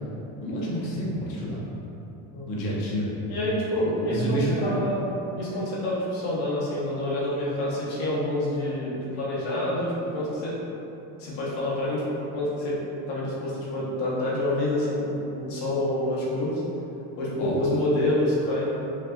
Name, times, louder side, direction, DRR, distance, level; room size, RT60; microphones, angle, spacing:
voice 1, 0.4-1.6 2.5-3.1 4.0-4.8 17.4-17.6, equal, 90° left, -5 dB, 1.2 m, -29 dB
voice 2, 3.3-5.0 5.4-10.5 11.2-12.0 12.3-12.8 13.1-16.6 17.2-18.6, left 1 dB, 70° left, -7 dB, 1.3 m, -27 dB
5.3 x 2.7 x 2.5 m, 2.9 s
cardioid pair, 165°, 36 cm